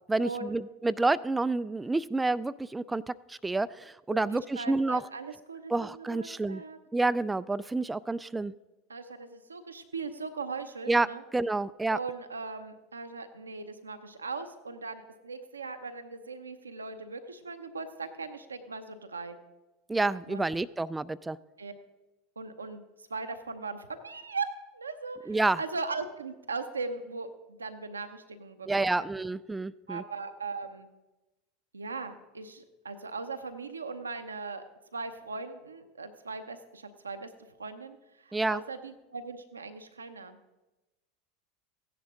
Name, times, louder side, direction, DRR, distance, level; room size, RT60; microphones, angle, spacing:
voice 1, 0.1-5.0 5.7-6.6 6.9-8.5 10.9-11.1 11.3-12.0 19.9-21.4 25.3-25.6 28.7-30.0 38.3-38.6, right 2 dB, 10° right, 16 dB, 0.3 m, -29 dB
voice 2, 4.1-6.8 8.9-11.2 11.9-19.4 20.3-20.5 21.6-21.7 22.4-24.5 24.7-29.0 29.9-30.9 31.7-34.6 34.9-37.3 37.6-40.4, right 4 dB, 90° right, 8 dB, 0.8 m, -39 dB
15.5 x 10.5 x 3.7 m, 1.1 s
hypercardioid pair, 80°, 0 cm